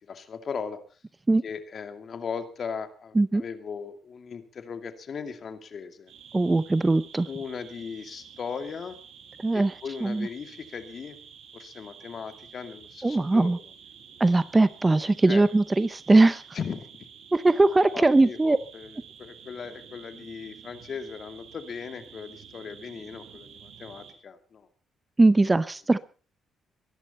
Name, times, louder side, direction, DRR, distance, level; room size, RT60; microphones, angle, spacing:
voice 1, 0.1-0.8 1.4-6.1 7.3-9.0 9.5-11.2 11.5-13.5 15.3-15.4 16.5-16.9 17.9-18.9 19.2-24.7, left 6 dB, 50° left, 7 dB, 2.5 m, -38 dB
sound 1, 6.1-24.1, right 7 dB, 75° right, 4.4 m, -50 dB
voice 2, 6.3-7.3 9.4-9.8 10.0-10.3 13.0-13.6 14.2-16.4 17.3-18.6 25.2-26.0, right 2 dB, 20° right, 15 dB, 0.7 m, -20 dB
23.0 x 11.5 x 4.3 m, 0.38 s
cardioid pair, 90°, 0 cm